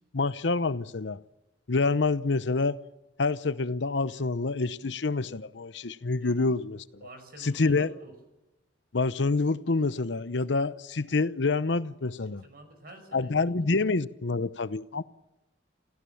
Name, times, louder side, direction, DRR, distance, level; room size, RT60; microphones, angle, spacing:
voice 1, 0.1-1.2 1.7-2.8 3.2-7.1 7.4-7.9 8.9-12.4 13.1-15.0, left 3 dB, 80° left, 0.8 m, -27 dB
voice 2, 7.0-8.1 12.2-13.7, right 2 dB, 55° right, 5.7 m, -49 dB
28.5 x 15.5 x 7.2 m
head